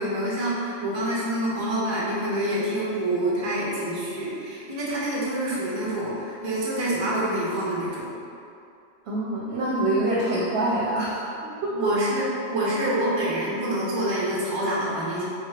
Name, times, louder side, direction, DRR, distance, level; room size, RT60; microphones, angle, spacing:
voice 1, 0.0-8.1 10.3-10.4 11.7-15.3, right 1 dB, 30° right, -7 dB, 0.6 m, -27 dB
voice 2, 9.1-11.3 11.6-11.9, right 1 dB, 70° right, -7 dB, 0.8 m, -25 dB
3.3 x 3.0 x 2.4 m, 2.5 s
omnidirectional pair, 1.1 m